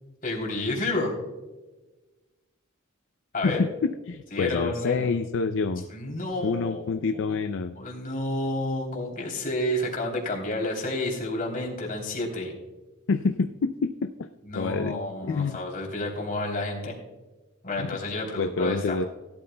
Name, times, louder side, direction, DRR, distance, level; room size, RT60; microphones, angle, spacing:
voice 1, 0.2-1.2 3.3-3.6 4.3-5.1 5.9-6.9 7.8-12.5 14.4-16.9 17.6-19.0, left 1 dB, 40° left, 0 dB, 3.2 m, -30 dB
voice 2, 3.4-5.8 6.4-7.8 13.1-14.1 14.5-15.0 15.3-15.6 17.8-18.0 18.4-19.0, left 4 dB, 65° left, 9 dB, 0.4 m, -27 dB
17.5 x 12.5 x 2.2 m, 1.2 s
head